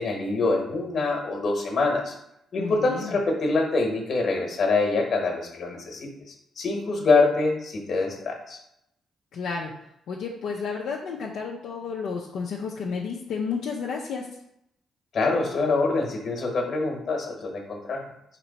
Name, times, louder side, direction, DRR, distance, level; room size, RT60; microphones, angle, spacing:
voice 1, 0.0-2.1 2.5-6.1 6.6-8.6 15.1-18.1, left 3 dB, 50° left, 2 dB, 1.2 m, -25 dB
voice 2, 2.6-3.2 9.3-9.7 10.1-14.3, left 5 dB, 75° left, -3 dB, 0.5 m, -31 dB
4.4 x 3.0 x 4.1 m, 0.79 s
cardioid pair, 90°, 0 cm